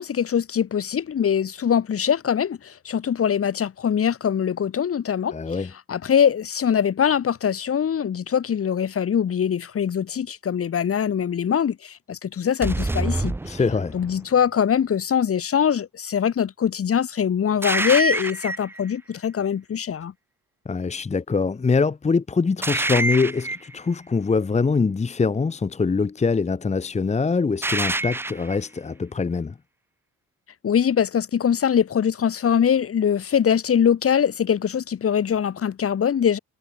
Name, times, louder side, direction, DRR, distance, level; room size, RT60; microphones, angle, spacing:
voice 1, 0.0-5.3 5.9-13.3 13.9-20.1 30.6-36.4, left 8 dB, 50° left, 2.0 m, -22 dB
voice 2, 5.3-5.7 13.4-14.0 20.7-29.5, left 4 dB, 20° left, 1.0 m, -23 dB
sound 1, 12.6-14.2 17.6-18.8 22.6-23.8 27.6-28.6, right 2 dB, 10° right, 0.5 m, -26 dB
cardioid pair, 90°, 30 cm